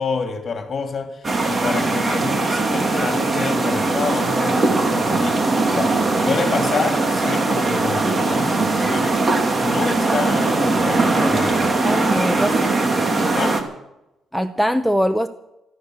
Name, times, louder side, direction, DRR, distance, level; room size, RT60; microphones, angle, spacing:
voice 1, 0.0-12.0 12.9-13.6, left 5 dB, 45° left, 3.1 m, -28 dB
sound 1, 1.2-13.6, right 3 dB, 30° right, 2.6 m, -20 dB
voice 2, 11.6-12.7 14.3-15.3, equal, ahead, 0.8 m, -22 dB
15.0 x 14.0 x 6.6 m
cardioid pair, 90°, 0 cm